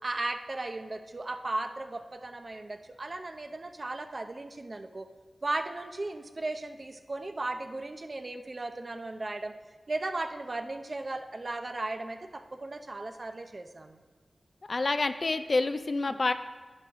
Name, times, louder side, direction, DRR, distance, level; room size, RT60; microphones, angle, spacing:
voice 1, 0.0-5.1 5.4-9.5 9.9-14.0 15.9-16.1, right 2 dB, 45° right, 7 dB, 0.7 m, -36 dB
voice 2, 14.7-16.3, left 3 dB, 50° left, 10 dB, 0.4 m, -28 dB
10.5 x 9.4 x 3.6 m, 1.4 s
wide cardioid pair, 80°, 0 cm